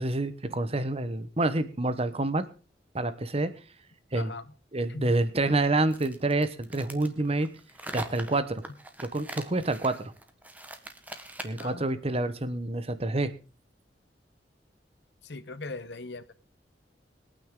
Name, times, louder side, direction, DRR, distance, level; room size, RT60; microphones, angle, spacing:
voice 1, 0.0-2.4 2.9-3.5 4.1-4.3 4.7-7.5 7.9-8.6 9.0-10.1 11.4-13.3, right 2 dB, 35° right, 12 dB, 1.1 m, -28 dB
voice 2, 4.1-4.5 4.9-5.1 11.6-11.9 15.2-16.3, left 3 dB, 75° left, 14 dB, 1.0 m, -40 dB
sound 1, 5.9-11.8, right 1 dB, 10° right, 1.4 m, -42 dB
21.5 x 9.1 x 3.8 m, 0.34 s
head